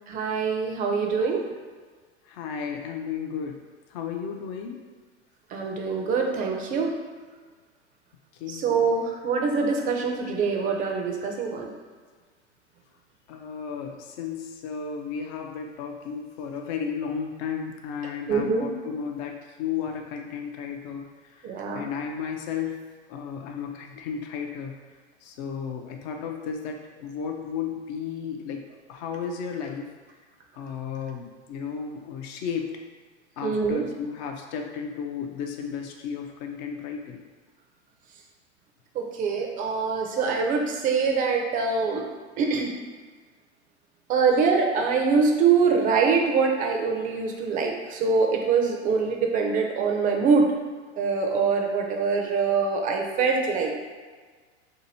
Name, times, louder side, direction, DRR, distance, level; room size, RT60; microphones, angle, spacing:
voice 1, 0.1-1.4 5.5-6.9 8.5-11.7 18.3-18.7 21.4-21.9 33.4-33.8 38.9-42.1 42.4-42.7 44.1-50.5 51.0-53.9, right 5 dB, 25° right, 2 dB, 0.4 m, -24 dB
voice 2, 2.2-3.6 3.9-4.8 8.3-8.7 13.3-22.8 23.1-24.8 25.2-28.6 28.9-29.9 30.6-32.7 33.4-37.2, left 7 dB, 40° left, 3 dB, 0.4 m, -34 dB
2.7 x 2.6 x 4.1 m, 1.5 s
hypercardioid pair, 95°, 35 cm